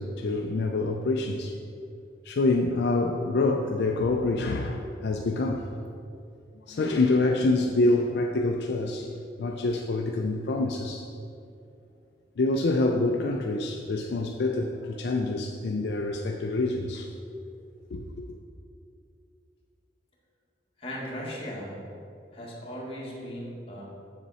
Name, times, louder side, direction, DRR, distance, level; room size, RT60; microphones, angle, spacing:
voice 1, 0.0-1.5 2.3-5.6 6.7-11.1 12.4-17.1 17.9-18.2, left 2 dB, 65° left, 2 dB, 0.4 m, -26 dB
voice 2, 20.8-21.8 22.3-23.8, equal, 35° left, -5 dB, 1.6 m, -37 dB
7.0 x 6.6 x 4.1 m, 2.4 s
head